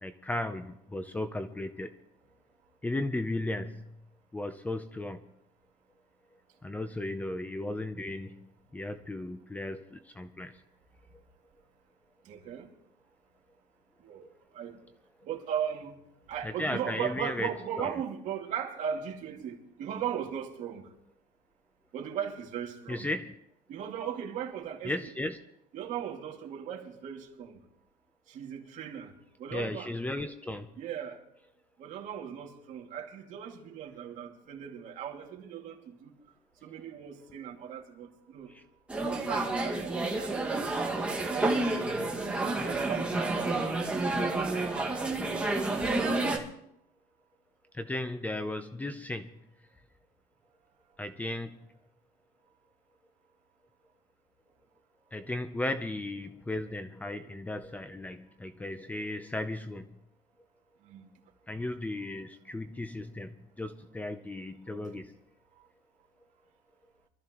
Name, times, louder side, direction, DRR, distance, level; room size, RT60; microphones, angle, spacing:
voice 1, 0.0-1.9 2.8-3.8 4.3-5.2 6.6-8.5 8.7-10.5 16.4-17.5 17.8-17.9 22.9-23.3 24.8-25.4 29.5-30.7 38.5-38.6 47.7-49.3 51.0-51.6 55.1-59.8 61.5-63.3 63.6-65.1, left 2 dB, 10° left, 0.6 m, -35 dB
voice 2, 12.2-12.7 14.0-14.3 14.5-14.8 15.2-16.0 16.3-20.9 21.9-23.1 23.7-25.1 25.7-27.6 28.3-29.1 29.4-29.9 30.8-31.2 31.8-36.2 36.6-38.5 39.0-40.9 41.3-43.4 44.1-44.9 60.8-61.1, right 9 dB, 50° right, 2.4 m, -38 dB
sound 1, 38.9-46.4, right 2 dB, 5° right, 1.9 m, -30 dB
24.5 x 13.5 x 3.1 m
cardioid pair, 145°, 16 cm